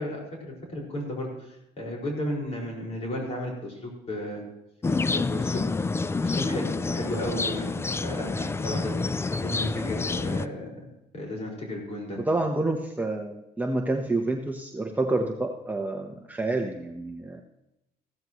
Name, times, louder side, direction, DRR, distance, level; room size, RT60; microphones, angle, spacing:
voice 1, 0.0-4.4 5.1-5.6 6.2-7.7 8.0-9.0 9.4-10.8 11.1-12.2, left 1 dB, 40° left, -2 dB, 5.5 m, -34 dB
sound 1, 4.8-10.5, left 3 dB, 15° left, 0.4 m, -28 dB
voice 2, 12.2-17.4, right 2 dB, 10° right, 1 dB, 1.1 m, -28 dB
15.5 x 13.5 x 3.1 m, 0.88 s
cardioid pair, 110°, 17 cm